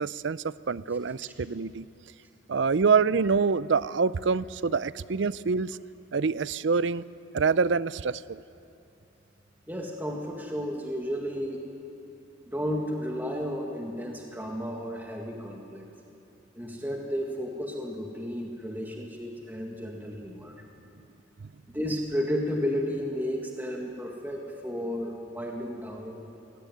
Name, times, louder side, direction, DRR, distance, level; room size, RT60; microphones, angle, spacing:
voice 1, 0.0-1.9 2.5-5.8 6.1-7.0 7.3-8.4, right 5 dB, 65° right, 18 dB, 0.5 m, -26 dB
voice 2, 9.7-11.7 12.5-15.9 16.5-20.6 21.7-26.2, equal, 10° right, 0 dB, 1.8 m, -33 dB
23.5 x 18.5 x 9.4 m, 2.7 s
head